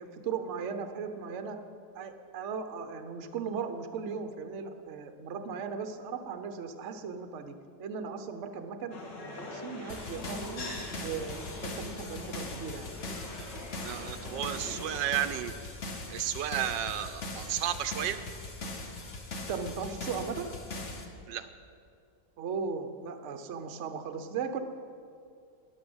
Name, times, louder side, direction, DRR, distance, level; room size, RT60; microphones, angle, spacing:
voice 1, 0.0-1.6 1.9-10.7 11.0-12.9 19.5-20.5 22.4-24.6, right 6 dB, 50° right, 8 dB, 1.0 m, -37 dB
sound 1, 8.9-15.2, left 2 dB, 75° left, 2.4 m, -43 dB
sound 2, 9.9-21.1, left 2 dB, 45° left, 1.5 m, -40 dB
voice 2, 13.8-15.5 16.1-18.2 21.3-21.5, right 11 dB, 80° right, 10 dB, 1.3 m, -32 dB
13.0 x 10.5 x 7.9 m, 2.4 s
omnidirectional pair, 1.9 m